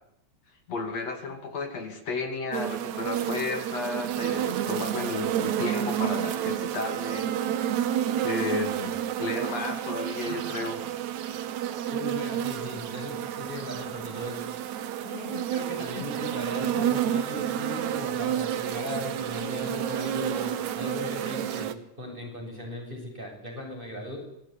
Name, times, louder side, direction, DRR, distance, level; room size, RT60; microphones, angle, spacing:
voice 1, 0.7-7.3 8.2-10.8 14.1-14.2 15.0-15.5 15.9-16.0 16.7-16.8, left 4 dB, 60° left, 5 dB, 3.7 m, -33 dB
sound 1, 2.5-21.7, right 10 dB, 75° right, 2.6 m, -30 dB
voice 2, 11.9-14.4 15.5-24.2, left 1 dB, 15° right, 1 dB, 7.9 m, -37 dB
25.5 x 20.5 x 10.0 m, 0.77 s
omnidirectional pair, 3.3 m